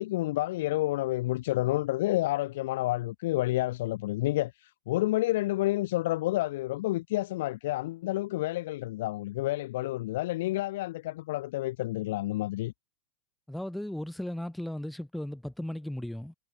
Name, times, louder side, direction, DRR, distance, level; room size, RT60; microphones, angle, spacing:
voice 1, 0.0-12.7, left 17 dB, 65° left, 0.5 m, -29 dB
voice 2, 13.5-16.3, left 1 dB, 5° left, 0.7 m, -36 dB
hypercardioid pair, 95°, 0 cm